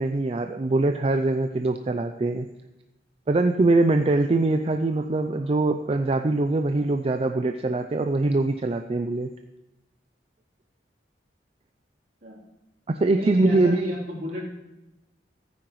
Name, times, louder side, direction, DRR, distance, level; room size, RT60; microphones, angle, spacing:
voice 1, 0.0-2.5 3.3-9.3 12.9-13.9, right 2 dB, 35° right, 7 dB, 0.4 m, -23 dB
voice 2, 13.1-14.5, equal, 55° right, -6 dB, 3.4 m, -32 dB
15.5 x 9.4 x 3.1 m, 0.98 s
head